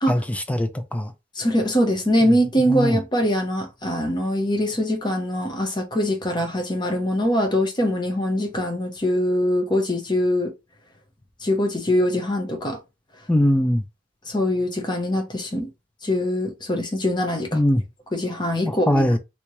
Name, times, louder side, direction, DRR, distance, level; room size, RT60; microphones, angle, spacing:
voice 1, 0.1-1.1 2.7-3.0 13.3-13.8 17.5-17.8 18.6-19.2, left 1 dB, 5° left, 0.4 m, -21 dB
voice 2, 1.3-10.5 11.4-12.8 14.3-15.7 16.0-17.6 18.1-19.0, left 1 dB, 25° left, 0.9 m, -23 dB
3.3 x 2.8 x 3.0 m
head